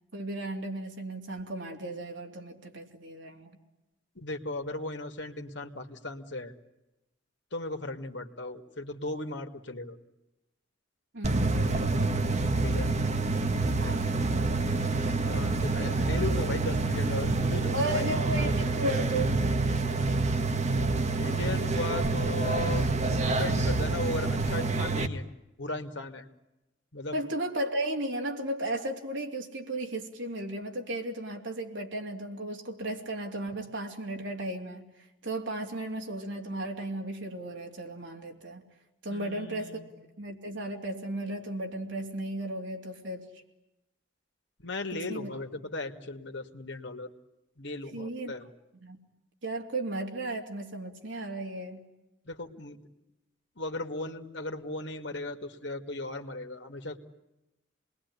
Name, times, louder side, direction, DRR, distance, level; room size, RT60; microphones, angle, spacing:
voice 1, 0.1-3.6 11.1-11.6 13.8-14.1 17.7-19.4 27.1-34.8 35.2-38.6 39.0-39.8 40.2-43.2 45.1-45.3 47.9-48.3 48.8-49.0 49.4-51.8, right 1 dB, 75° right, 2 dB, 3.1 m, -35 dB
voice 2, 4.2-6.5 7.5-10.0 12.6-12.9 15.2-18.1 21.2-22.9 23.3-25.3 25.6-26.3 26.9-27.2 39.1-39.9 44.6-47.1 47.6-48.5 52.3-52.8 53.6-57.0, left 2 dB, 65° left, 6 dB, 2.2 m, -37 dB
coffe machine motor, 11.2-25.1, right 3 dB, 35° right, 1.4 m, -27 dB
27.5 x 21.0 x 9.8 m, 0.95 s
head